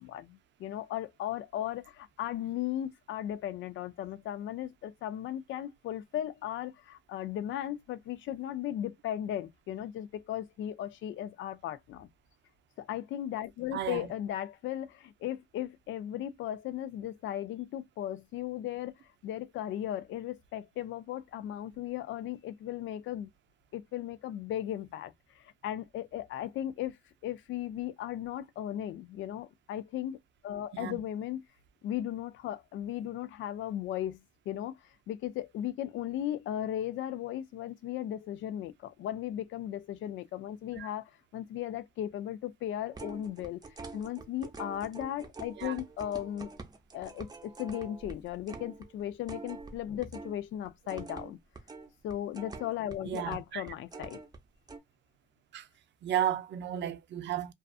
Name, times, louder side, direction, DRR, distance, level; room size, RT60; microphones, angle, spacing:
voice 1, 0.0-12.1 12.8-18.9 19.2-23.3 23.7-27.0 27.2-30.2 30.4-31.4 31.8-43.6 43.9-46.5 46.9-51.4 52.0-54.2, left 11 dB, 75° left, 0.4 m, -36 dB
voice 2, 13.7-14.1 30.7-31.0 40.8-40.9 45.6-45.7 53.0-53.6 55.5-55.7 56.0-57.5, right 10 dB, 65° right, 0.5 m, -33 dB
sound 1, 42.9-50.4 50.6-54.4 54.7-54.8, right 3 dB, 20° right, 0.6 m, -45 dB
2.4 x 2.4 x 2.4 m
cardioid pair, 90°, 20 cm